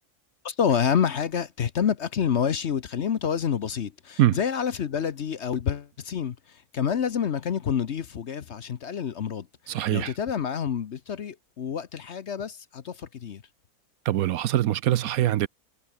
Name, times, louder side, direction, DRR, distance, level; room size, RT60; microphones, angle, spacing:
voice 1, 0.4-13.4, left 7 dB, 50° left, 1.0 m, -28 dB
voice 2, 9.7-10.1 14.1-15.5, right 13 dB, 70° right, 1.0 m, -23 dB
omnidirectional pair, 1.6 m